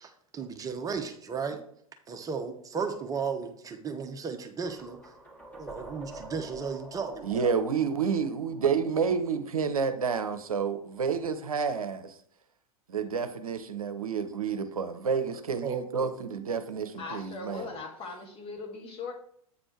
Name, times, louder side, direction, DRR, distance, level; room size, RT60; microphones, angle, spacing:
voice 1, 0.0-1.6 2.1-5.0 5.6-7.5 15.6-16.1, right 5 dB, 20° right, 0.9 m, -35 dB
sound 1, 4.6-9.6, right 1 dB, 5° left, 2.2 m, -47 dB
voice 2, 7.2-12.2 12.9-17.7, right 6 dB, 75° right, 0.8 m, -29 dB
voice 3, 17.0-19.1, left 4 dB, 30° left, 1.6 m, -39 dB
8.5 x 4.4 x 4.5 m
figure-of-eight pair, 95°, 19 cm